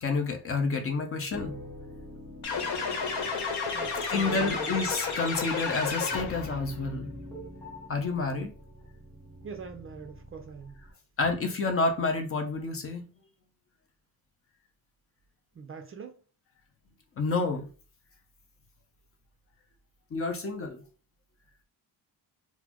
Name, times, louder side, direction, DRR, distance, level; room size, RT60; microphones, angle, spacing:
voice 1, 0.0-1.6 4.1-7.1 7.9-8.5 11.2-13.0 17.2-17.7 20.1-20.8, left 3 dB, 35° left, 0.6 m, -29 dB
sound 1, 1.3-10.9, left 1 dB, 5° left, 0.9 m, -45 dB
sound 2, 2.4-6.6, left 5 dB, 85° left, 0.9 m, -31 dB
voice 2, 3.7-4.8 9.4-10.8 15.5-16.2, right 6 dB, 35° right, 0.4 m, -42 dB
4.0 x 2.0 x 2.9 m
cardioid pair, 140°, 40 cm